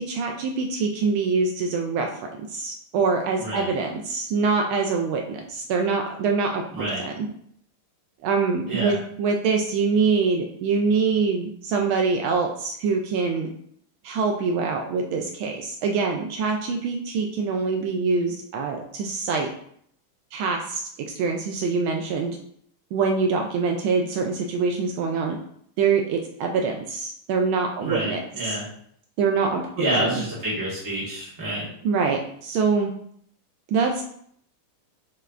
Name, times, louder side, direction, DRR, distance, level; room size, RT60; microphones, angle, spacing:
voice 1, 0.0-7.1 8.2-13.5 14.0-19.5 20.3-22.4 22.9-25.4 25.8-28.2 29.2-30.2 31.8-32.9 33.7-34.0, right 4 dB, 75° right, 3 dB, 1.3 m, -24 dB
voice 2, 3.4-3.7 6.7-7.0 8.7-8.9 27.8-28.6 29.8-31.7, right 1 dB, 10° right, -7 dB, 1.3 m, -28 dB
6.7 x 3.2 x 2.4 m, 0.66 s
omnidirectional pair, 2.4 m